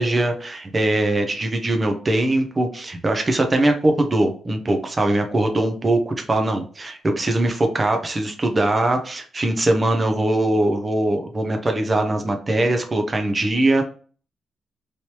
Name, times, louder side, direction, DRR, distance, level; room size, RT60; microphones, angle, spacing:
voice 1, 0.0-13.8, right 1 dB, 25° right, 4 dB, 0.6 m, -21 dB
3.2 x 2.9 x 2.9 m, 0.41 s
cardioid pair, 115°, 0 cm